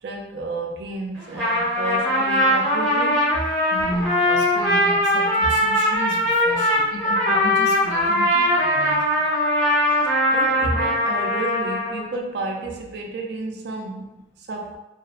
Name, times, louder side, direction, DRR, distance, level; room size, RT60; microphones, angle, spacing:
voice 1, 0.0-3.5 5.4-5.6 9.9-14.8, right 2 dB, 60° right, 0.4 m, -31 dB
Trumpet, 1.2-12.1, equal, ahead, 0.9 m, -21 dB
voice 2, 3.7-9.3, left 1 dB, 75° left, 0.5 m, -33 dB
2.6 x 2.1 x 2.4 m
head